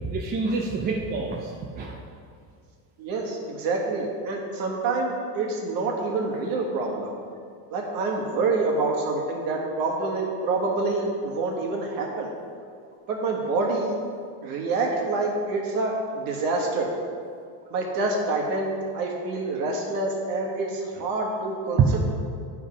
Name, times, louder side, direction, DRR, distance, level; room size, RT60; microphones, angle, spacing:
voice 1, 0.0-1.9 21.8-22.0, right 5 dB, 25° right, -1 dB, 0.4 m, -25 dB
voice 2, 3.0-7.1 7.7-12.3 13.1-13.9 14.4-16.9 17.7-22.0, right 3 dB, 50° right, 0 dB, 1.4 m, -27 dB
9.1 x 3.6 x 5.0 m, 2.3 s
cardioid pair, 150°, 43 cm